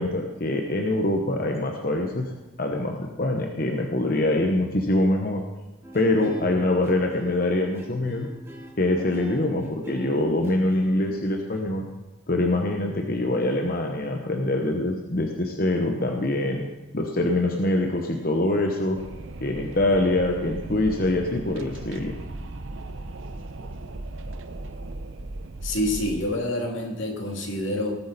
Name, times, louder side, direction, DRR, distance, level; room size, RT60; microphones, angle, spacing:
voice 1, 0.0-2.3 2.6-5.4 5.9-8.3 8.8-11.9 12.3-16.6 16.9-19.0 19.4-22.1, left 1 dB, 45° left, 2 dB, 1.0 m, -24 dB
sound 1, 5.8-11.6, equal, 15° right, 2.2 m, -40 dB
Wind, 19.0-26.2, right 2 dB, 80° right, 0.7 m, -37 dB
voice 2, 25.6-27.9, left 1 dB, 80° left, 1 dB, 2.4 m, -27 dB
18.5 x 8.6 x 4.1 m, 1.0 s
head